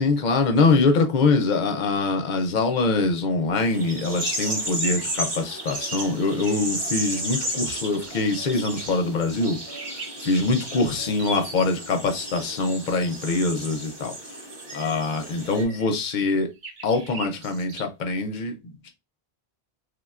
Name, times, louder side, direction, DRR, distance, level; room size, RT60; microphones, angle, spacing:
voice 1, 0.0-9.6 10.2-14.1 14.7-16.5 16.8-18.9, left 3 dB, 55° left, 0.7 m, -24 dB
sound 1, 3.5-15.6, right 1 dB, 30° right, 0.6 m, -33 dB
sound 2, 4.2-4.5 4.8-5.0 5.6-6.5 7.5-8.2 9.8-10.4 11.1-11.8 14.6-15.0 15.5-16.1 16.6-17.8, right 3 dB, 75° right, 1.0 m, -38 dB
3.4 x 2.2 x 2.4 m
omnidirectional pair, 1.1 m